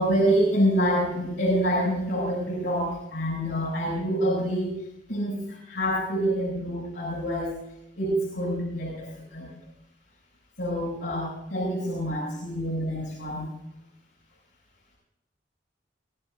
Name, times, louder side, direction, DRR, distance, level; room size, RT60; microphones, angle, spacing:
voice 1, 0.0-7.5 8.0-9.5 10.6-13.4, equal, 85° left, -7 dB, 7.4 m, -27 dB
24.5 x 16.5 x 2.7 m, 0.84 s
head